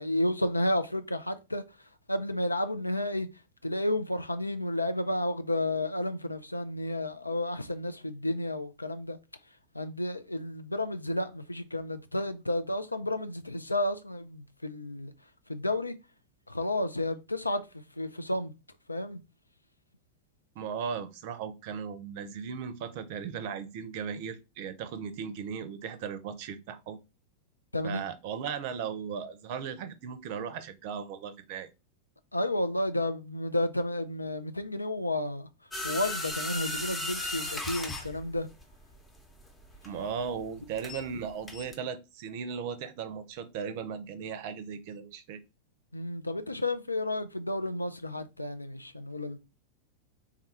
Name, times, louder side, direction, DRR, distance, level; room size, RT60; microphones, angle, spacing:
voice 1, 0.0-3.3 3.6-9.2 9.7-15.1 15.5-15.9 16.5-17.6 18.0-18.5 18.9-19.2 27.7-28.0 32.3-35.5 35.8-38.5 45.9-49.4, left 1 dB, 85° left, 0.4 m, -31 dB
voice 2, 20.6-27.0 27.8-31.7 39.8-45.4, right 7 dB, 50° right, 0.5 m, -37 dB
sound 1, 35.7-41.2 41.5-41.7, left 1 dB, 10° left, 0.8 m, -36 dB
3.6 x 2.3 x 4.1 m
figure-of-eight pair, 90°, 0 cm